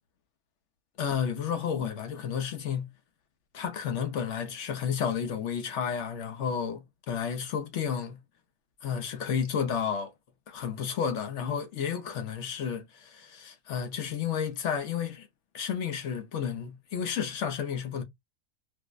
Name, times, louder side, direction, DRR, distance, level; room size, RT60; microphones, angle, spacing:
voice 1, 1.0-2.9 3.5-8.2 8.8-10.1 10.5-15.3 15.5-18.0, left 7 dB, 65° left, 0.9 m, -31 dB
4.6 x 2.0 x 2.3 m
omnidirectional pair, 1.4 m